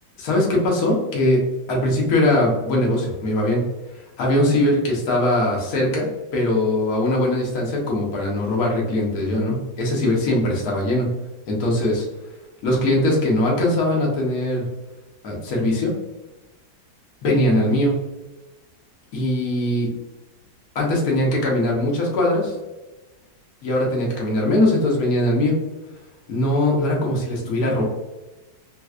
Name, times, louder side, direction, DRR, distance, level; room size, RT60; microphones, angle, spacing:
voice 1, 0.2-1.4 1.7-3.6 4.2-11.1 11.5-12.1 12.6-14.6 15.2-15.9 17.2-17.9 19.1-19.9 20.7-22.5 23.6-25.6 26.3-27.8, left 1 dB, 60° left, -2 dB, 1.3 m, -21 dB
3.3 x 3.0 x 2.4 m, 1.1 s
omnidirectional pair, 1.9 m